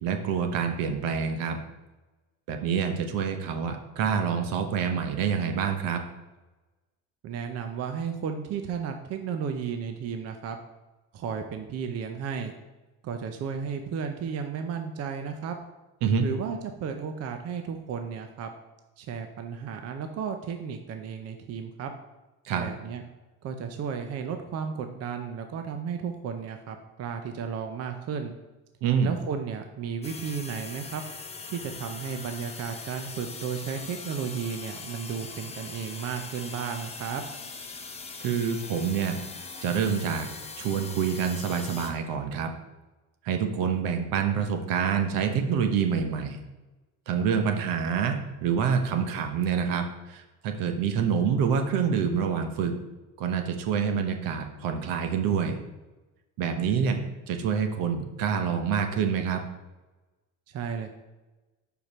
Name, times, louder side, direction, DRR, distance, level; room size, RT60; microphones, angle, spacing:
voice 1, 0.0-1.6 2.5-6.0 16.0-16.3 22.4-22.6 28.8-29.1 38.2-39.2 39.6-40.3 40.6-42.5 43.2-46.4 47.1-52.8 53.2-55.6 56.4-57.0 57.3-59.4, right 7 dB, 70° right, 6 dB, 1.0 m, -27 dB
voice 2, 7.2-10.6 11.1-12.5 13.0-15.6 16.2-18.5 19.0-21.9 22.5-23.0 23.4-28.3 29.0-31.0 31.5-37.2 60.5-60.9, right 6 dB, 45° right, 6 dB, 0.6 m, -33 dB
sound 1, 30.0-41.9, left 4 dB, 20° left, 0.7 m, -41 dB
5.1 x 4.6 x 5.4 m, 1.1 s
cardioid pair, 130°, 35 cm